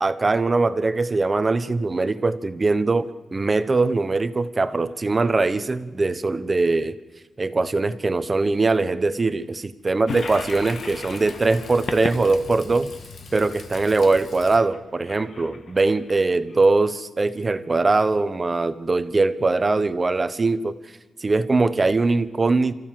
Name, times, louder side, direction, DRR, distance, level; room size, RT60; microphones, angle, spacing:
voice 1, 0.0-7.0 7.4-12.9 13.3-20.7 21.2-22.7, right 3 dB, 25° right, 13 dB, 1.0 m, -21 dB
Toilet flush, 10.1-16.6, left 4 dB, 50° left, 1.7 m, -36 dB
28.5 x 14.5 x 7.6 m, 1.2 s
wide cardioid pair, 150°, 0 cm